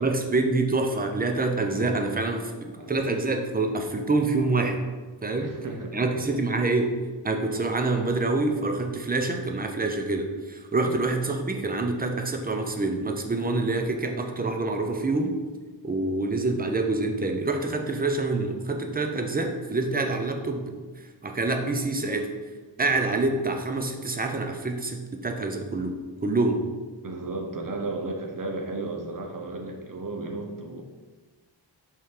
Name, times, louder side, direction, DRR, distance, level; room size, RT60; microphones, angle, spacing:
voice 1, 0.0-4.8 5.2-5.5 5.9-6.9 7.2-15.3 15.8-20.7 21.2-22.3 22.8-26.6, right 3 dB, 20° right, 4 dB, 0.5 m, -26 dB
voice 2, 5.4-6.3 10.8-11.0 27.0-30.8, right 2 dB, 45° right, 2 dB, 0.9 m, -34 dB
5.5 x 3.7 x 4.8 m, 1.3 s
wide cardioid pair, 150°, 47 cm